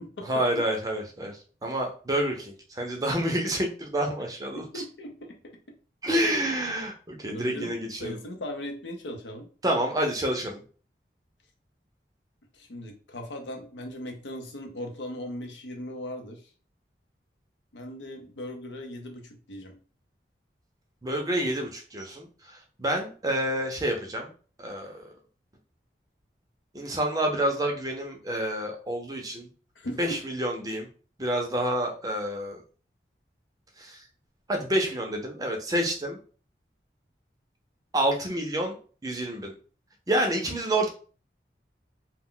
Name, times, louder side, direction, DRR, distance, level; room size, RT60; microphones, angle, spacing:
voice 1, 0.3-4.8 6.0-8.2 9.6-10.6 21.0-24.3 24.6-25.1 26.7-29.5 30.0-30.9 31.2-32.6 33.8-34.0 34.5-36.2 37.9-38.8 39.0-39.5 40.1-40.9, right 1 dB, 20° right, 2 dB, 0.5 m, -28 dB
voice 2, 4.5-5.6 7.3-9.5 12.5-16.5 17.7-19.8 29.8-30.2, left 1 dB, 85° left, 3 dB, 0.6 m, -38 dB
2.3 x 2.2 x 3.7 m, 0.39 s
head